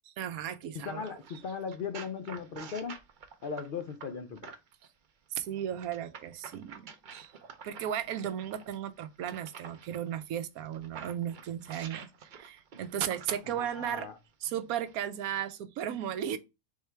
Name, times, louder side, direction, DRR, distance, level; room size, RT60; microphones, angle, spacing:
voice 1, 0.1-1.1 5.3-7.3 7.6-12.1 12.3-14.1 14.4-16.4, right 10 dB, 80° right, 1.0 m, -35 dB
voice 2, 0.7-3.0 3.4-4.5 13.4-14.2, left 6 dB, 75° left, 0.5 m, -38 dB
sound 1, 0.8-4.9 5.8-10.0 10.6-14.0 14.8-14.9, right 6 dB, 60° right, 0.5 m, -49 dB
3.6 x 3.2 x 4.5 m
omnidirectional pair, 1.5 m